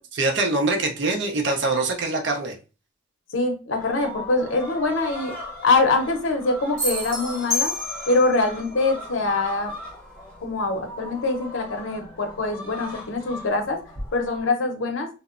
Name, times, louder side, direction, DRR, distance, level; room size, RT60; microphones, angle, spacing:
voice 1, 0.1-2.5, right 2 dB, 60° right, 3 dB, 0.5 m, -23 dB
voice 2, 3.3-5.3 5.6-7.7 8.1-9.7 10.4-13.8 14.1-15.1, left 3 dB, 80° left, 4 dB, 0.6 m, -23 dB
sound 1, 3.7-14.5, left 1 dB, 10° left, 0.8 m, -38 dB
sound 2, 6.8-8.4, left 2 dB, 40° right, 1.2 m, -28 dB
2.8 x 2.0 x 2.4 m, 0.33 s
head